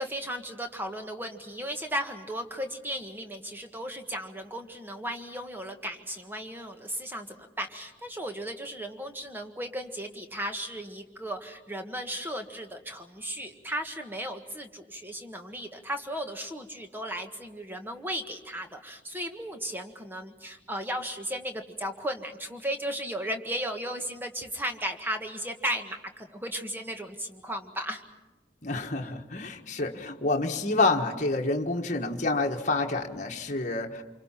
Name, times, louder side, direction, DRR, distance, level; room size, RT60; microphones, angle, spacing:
voice 1, 0.0-28.0, equal, 10° right, 5 dB, 1.6 m, -35 dB
voice 2, 28.6-34.0, left 2 dB, 40° left, 2 dB, 1.5 m, -28 dB
27.5 x 24.5 x 5.9 m, 1.1 s
head